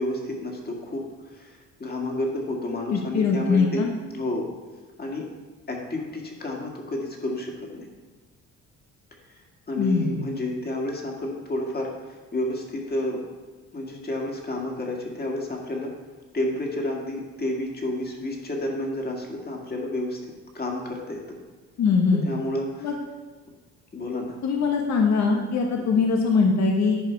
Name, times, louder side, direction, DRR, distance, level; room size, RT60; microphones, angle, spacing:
voice 1, 0.0-3.9 4.1-4.5 5.0-5.3 5.7-7.9 9.3-9.4 9.7-13.2 13.7-15.9 16.3-20.2 20.5-21.4 22.1-22.9 23.9-24.4 25.8-26.0, left 1 dB, 30° left, 0 dB, 2.1 m, -30 dB
voice 2, 2.9-3.9 9.8-10.2 21.8-22.3 22.8-22.9 24.4-27.0, left 4 dB, 65° left, 2 dB, 1.1 m, -22 dB
11.0 x 4.9 x 4.6 m, 1.3 s
cardioid pair, 90°, 30 cm